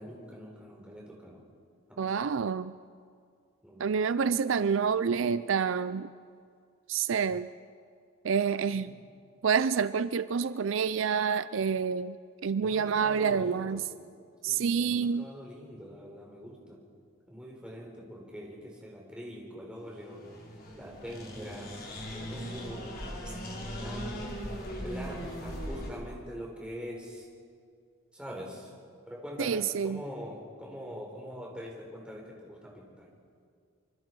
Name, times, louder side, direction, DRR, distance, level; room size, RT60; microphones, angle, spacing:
voice 1, 0.0-1.4 1.9-2.2 3.6-3.9 8.7-9.0 12.6-13.9 14.4-16.8 17.3-20.3 20.8-21.8 22.1-23.0 23.2-23.4 23.8-24.2 24.8-27.3 28.1-28.7 29.1-33.1, equal, 5° right, -2 dB, 4.2 m, -43 dB
voice 2, 2.0-2.7 3.8-6.1 6.9-7.5 8.2-8.9 9.4-12.2 12.4-13.8 14.4-15.3 29.4-30.0, right 6 dB, 65° right, 14 dB, 0.4 m, -28 dB
sound 1, 20.0-25.9, equal, 45° left, 4.0 m, -39 dB
26.0 x 24.5 x 4.7 m, 2.2 s
head